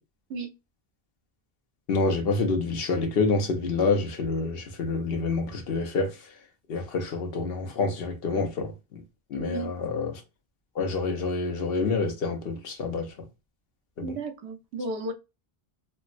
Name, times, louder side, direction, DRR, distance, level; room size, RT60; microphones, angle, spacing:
voice 1, 1.9-6.1 6.7-8.7 9.3-10.1 10.8-13.1 14.0-14.1, left 3 dB, 65° left, 0.9 m, -27 dB
voice 2, 9.3-9.7 14.0-15.1, right 3 dB, 80° right, 1.0 m, -33 dB
4.3 x 2.0 x 2.4 m
omnidirectional pair, 1.1 m